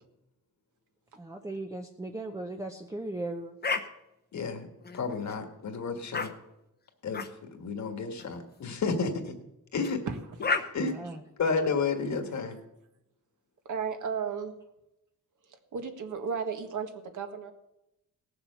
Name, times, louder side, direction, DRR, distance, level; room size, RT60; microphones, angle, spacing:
voice 1, 1.2-3.5 10.8-11.2, right 2 dB, 10° right, 4 dB, 0.7 m, -37 dB
sound 1, 3.6-3.9 4.8-5.3 6.1-6.3 7.1-7.3 8.2-8.4 9.8-10.0 10.4-10.6, left 4 dB, 30° left, 0.8 m, -31 dB
voice 2, 4.3-4.7 4.9-6.3 7.0-7.2 7.5-9.3 9.7-10.0 10.7-11.1 11.4-12.6, left 4 dB, 55° left, 6 dB, 1.7 m, -31 dB
voice 3, 10.1-11.1 13.6-14.5 15.5-17.5, right 6 dB, 60° right, 6 dB, 1.6 m, -35 dB
17.5 x 7.1 x 6.9 m, 0.89 s
wide cardioid pair, 140°, 34 cm